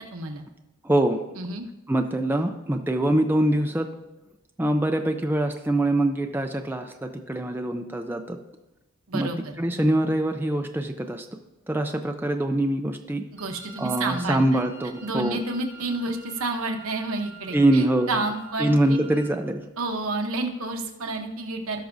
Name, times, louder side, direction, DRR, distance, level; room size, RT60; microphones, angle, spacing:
voice 1, 0.1-0.4 1.4-1.6 9.1-9.4 13.3-14.6 15.0-19.0 19.8-21.9, right 2 dB, 80° right, 4 dB, 0.9 m, -30 dB
voice 2, 0.8-1.2 1.9-3.9 4.6-8.4 9.1-9.3 9.6-11.3 11.7-13.2 13.8-15.4 17.5-18.2 18.6-19.6, right 1 dB, 10° right, 4 dB, 0.4 m, -24 dB
Wind instrument woodwind instrument, 13.4-19.4, right 3 dB, 15° left, 2.3 m, -47 dB
17.5 x 6.0 x 2.6 m, 1.0 s
head